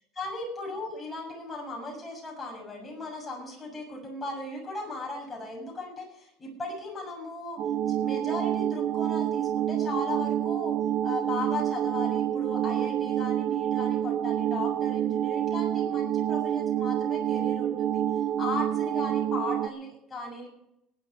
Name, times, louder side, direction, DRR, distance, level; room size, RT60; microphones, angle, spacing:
voice 1, 0.1-7.6 7.9-10.8 11.0-20.5, left 2 dB, 15° left, -1 dB, 6.8 m, -37 dB
sound 1, 7.6-19.7, right 10 dB, 50° right, 0.7 m, -27 dB
19.5 x 11.0 x 4.7 m, 0.79 s
cardioid pair, 130°, 0 cm